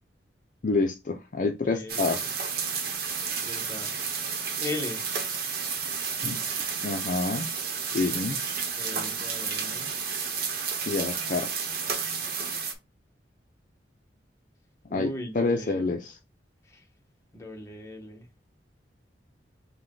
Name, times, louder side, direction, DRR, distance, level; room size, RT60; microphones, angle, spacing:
voice 1, 0.6-2.2 6.2-6.4 6.8-7.5 7.8-8.4 10.9-11.5 14.9-16.2, left 3 dB, 50° left, 0.5 m, -28 dB
voice 2, 1.7-2.1 3.4-3.9 4.6-5.0 8.8-9.9 14.9-16.0 16.7-16.8 17.3-18.3, left 2 dB, 15° left, 1.0 m, -38 dB
sound 1, 1.9-12.7, right 6 dB, 60° right, 0.9 m, -31 dB
5.5 x 2.2 x 3.7 m
head